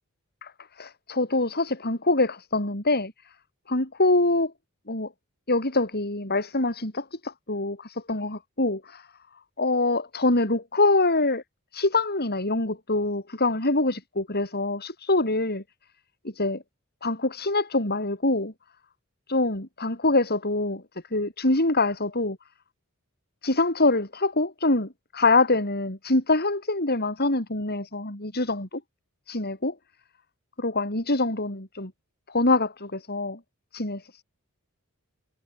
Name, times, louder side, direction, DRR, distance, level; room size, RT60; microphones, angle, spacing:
voice 1, 0.4-3.3 3.7-4.5 4.9-5.1 5.5-9.1 9.6-11.4 11.7-15.6 16.2-16.6 17.0-18.5 19.3-20.8 21.1-22.4 23.4-28.8 29.3-29.7 30.6-31.9 32.3-33.4 33.7-34.0, left 2 dB, 45° left, 7.5 m, -25 dB
head